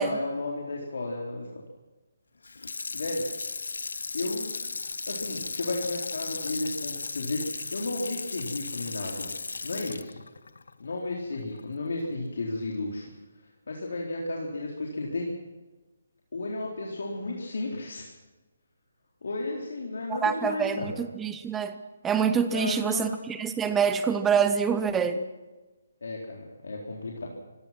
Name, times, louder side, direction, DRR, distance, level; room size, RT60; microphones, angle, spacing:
voice 1, 0.0-1.5 2.9-3.3 4.1-4.5 5.1-9.3 9.6-10.1 10.8-13.1 13.7-15.3 16.3-18.0 19.2-20.9 22.5-23.1 26.0-27.3, left 2 dB, 70° left, -2 dB, 4.1 m, -33 dB
Water tap faucet / Sink (filling or washing), 2.4-11.6 12.0-12.1, left 4 dB, 85° left, 1.1 m, -36 dB
voice 2, 20.1-21.7 22.0-25.3, right 6 dB, 10° right, 10 dB, 0.8 m, -26 dB
24.5 x 17.0 x 6.1 m, 1.2 s
hypercardioid pair, 170°, 0 cm